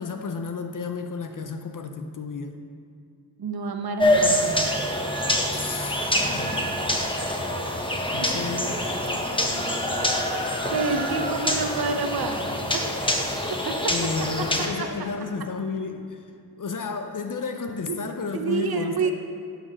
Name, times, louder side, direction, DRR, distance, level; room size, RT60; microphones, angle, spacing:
voice 1, 0.0-2.6 5.5-6.2 8.1-8.8 13.9-16.2 16.6-19.1, left 4 dB, 45° left, 6 dB, 0.7 m, -32 dB
voice 2, 3.4-4.7 10.7-13.0 13.5-13.9 14.4-14.9 17.9-18.0 18.3-19.1, right 4 dB, 60° right, 6 dB, 0.9 m, -29 dB
sound 1, 4.0-14.7, left 1 dB, 10° left, 1.1 m, -25 dB
10.5 x 4.0 x 6.4 m, 2.3 s
cardioid pair, 55°, 42 cm